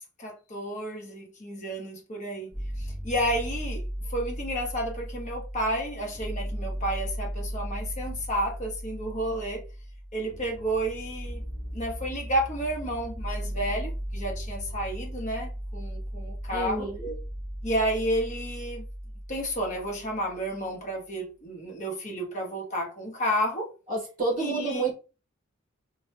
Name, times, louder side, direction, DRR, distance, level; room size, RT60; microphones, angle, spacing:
voice 1, 0.2-2.5 2.8-3.8 4.1-9.6 10.1-11.4 11.7-17.1 17.6-18.8 19.3-23.7 24.4-24.9, right 1 dB, 35° left, 0.8 m, -31 dB
sound 1, 2.5-20.5, equal, 5° left, 0.7 m, -36 dB
voice 2, 16.5-17.1 23.9-25.0, right 3 dB, 40° right, 1.2 m, -29 dB
3.0 x 2.1 x 3.3 m
head